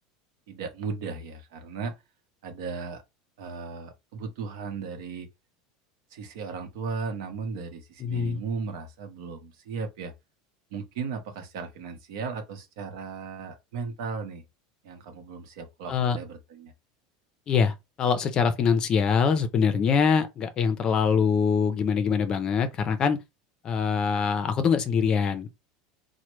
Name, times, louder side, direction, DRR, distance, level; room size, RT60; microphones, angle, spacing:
voice 1, 0.5-1.9 2.4-3.0 3.4-5.3 6.1-10.1 10.7-14.4 14.8-16.7, right 5 dB, 75° right, 0.8 m, -36 dB
voice 2, 8.0-8.4 15.9-16.2 17.5-23.2 23.6-25.5, left 6 dB, 35° left, 0.5 m, -24 dB
3.1 x 2.1 x 3.0 m
supercardioid pair, 135°, 2 cm